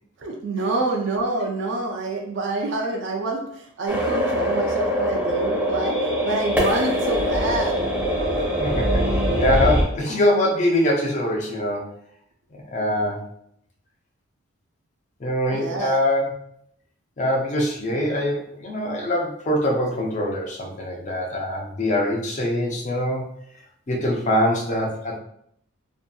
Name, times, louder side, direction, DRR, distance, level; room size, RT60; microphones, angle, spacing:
voice 1, 0.2-7.8 15.5-16.0, right 2 dB, 55° right, 1 dB, 0.4 m, -27 dB
sound 1, 3.9-9.8, equal, 5° right, 0.7 m, -23 dB
voice 2, 8.6-11.9 12.5-13.2 15.2-16.3 17.2-23.3 23.9-25.2, left 1 dB, 35° left, 0 dB, 0.5 m, -23 dB
2.6 x 2.5 x 2.2 m, 0.70 s
head